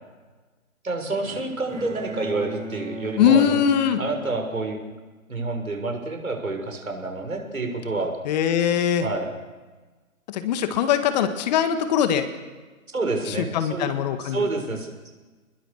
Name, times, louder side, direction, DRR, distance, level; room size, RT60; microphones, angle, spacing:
voice 1, 0.8-3.6 4.0-4.8 5.3-8.1 9.0-9.3 12.9-13.9 14.2-14.9, right 3 dB, 75° right, 3 dB, 6.9 m, -28 dB
Bowed string instrument, 1.2-5.5, equal, 15° right, 3.5 m, -37 dB
voice 2, 3.2-4.0 8.3-9.1 10.3-12.3 13.5-14.4, left 9 dB, 30° left, 9 dB, 1.9 m, -21 dB
29.5 x 21.0 x 6.7 m, 1.3 s
figure-of-eight pair, 130°, 42 cm